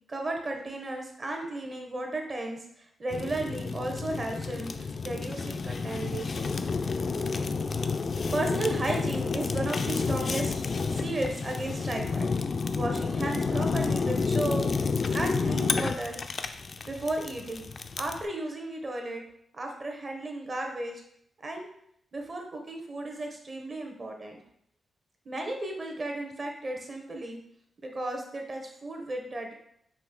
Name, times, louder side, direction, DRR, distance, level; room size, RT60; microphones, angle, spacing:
voice 1, 0.1-6.5 8.3-10.6 10.9-12.3 12.7-14.7 15.1-16.2 16.8-17.7 18.0-19.2 19.5-21.0 21.4-21.7 22.1-24.4 25.2-27.4 27.8-29.5, right 2 dB, 40° right, 2 dB, 1.0 m, -34 dB
Fire, 3.1-18.3, left 4 dB, 45° left, 0.3 m, -30 dB
4.9 x 2.9 x 3.8 m, 0.71 s
cardioid pair, 100°, 0 cm